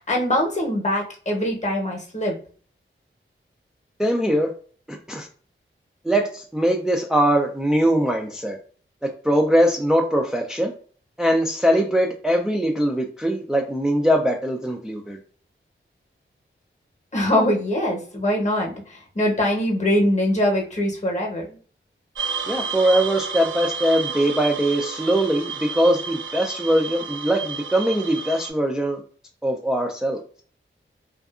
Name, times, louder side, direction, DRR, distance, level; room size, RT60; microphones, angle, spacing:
voice 1, 0.0-2.4 17.1-21.5, left 1 dB, 35° left, 0 dB, 0.9 m, -22 dB
voice 2, 4.0-4.5 4.9-5.3 6.0-8.6 9.0-10.7 11.2-15.2 22.5-29.0 29.4-30.2, equal, 5° right, 1 dB, 0.4 m, -21 dB
sound 1, 22.2-28.5, right 6 dB, 70° right, 0.4 m, -31 dB
2.6 x 2.3 x 2.3 m, 0.42 s
wide cardioid pair, 65°, 21 cm